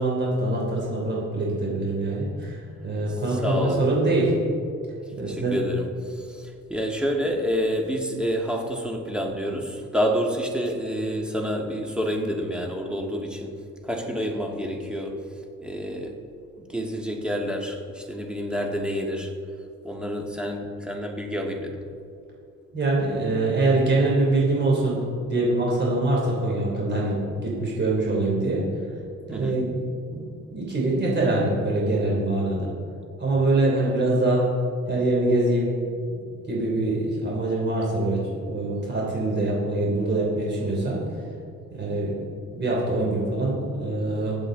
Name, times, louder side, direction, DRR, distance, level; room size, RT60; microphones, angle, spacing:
voice 1, 0.0-4.3 5.2-5.6 22.7-28.6 29.3-29.8 30.1-32.7 33.2-34.5 34.9-35.7 36.1-36.2 36.5-41.0 41.7-42.1 42.5-44.4, right 2 dB, 35° right, -4 dB, 3.2 m, -24 dB
voice 2, 3.3-3.8 5.2-13.5 13.8-15.2 15.6-19.3 19.8-21.8 29.3-29.6, equal, 5° right, 1 dB, 1.8 m, -28 dB
20.5 x 8.0 x 3.9 m, 2.4 s
cardioid pair, 90°, 30 cm